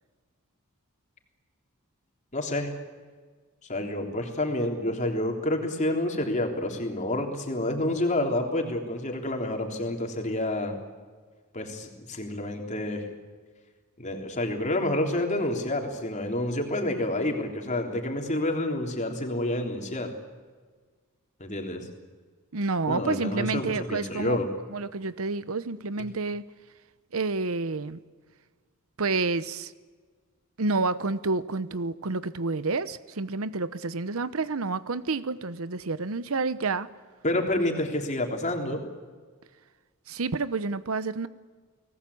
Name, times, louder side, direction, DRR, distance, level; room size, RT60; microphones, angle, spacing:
voice 1, 2.3-2.7 3.7-10.8 11.5-13.1 14.0-20.1 21.4-21.9 22.9-24.5 37.2-38.8, left 1 dB, 35° left, 3 dB, 3.6 m, -28 dB
voice 2, 22.5-24.4 24.7-26.4 27.1-28.0 29.0-29.7 30.6-36.9 40.1-41.3, right 3 dB, 70° right, 15 dB, 0.9 m, -29 dB
30.0 x 19.5 x 8.6 m, 1.5 s
head